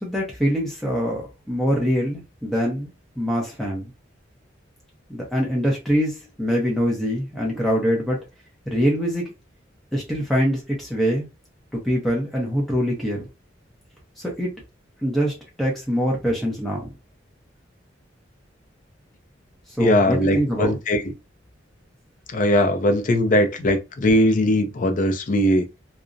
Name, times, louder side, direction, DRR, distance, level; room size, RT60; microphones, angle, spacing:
voice 1, 0.0-2.9 3.2-3.9 5.1-8.2 8.7-9.3 9.9-11.3 11.8-13.3 14.2-14.5 15.0-16.9 19.8-20.8, equal, ahead, 0.6 m, -24 dB
voice 2, 19.8-21.1 22.3-25.7, left 1 dB, 40° left, 0.4 m, -20 dB
2.5 x 2.0 x 2.4 m
head